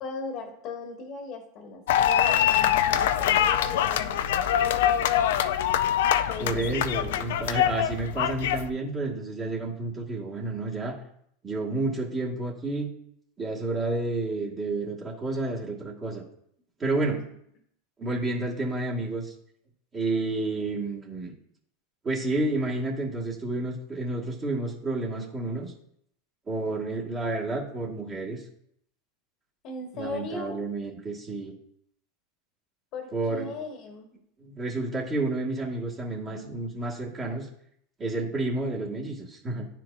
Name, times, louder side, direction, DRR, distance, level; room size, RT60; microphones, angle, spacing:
voice 1, 0.0-5.5 6.3-6.8 17.0-17.2 29.6-30.6 32.9-34.1, left 4 dB, 50° left, 3 dB, 1.2 m, -38 dB
sound 1, 1.9-8.7, left 10 dB, 75° left, 0.3 m, -24 dB
voice 2, 6.4-11.0 11.4-12.9 13.4-16.2 16.8-17.2 18.0-19.3 19.9-21.3 22.0-25.7 26.5-28.4 29.9-31.6 33.1-33.5 34.4-37.5 38.0-39.7, right 2 dB, 30° right, -4 dB, 1.5 m, -30 dB
9.7 x 4.5 x 2.5 m, 0.71 s
hypercardioid pair, 100°, 0 cm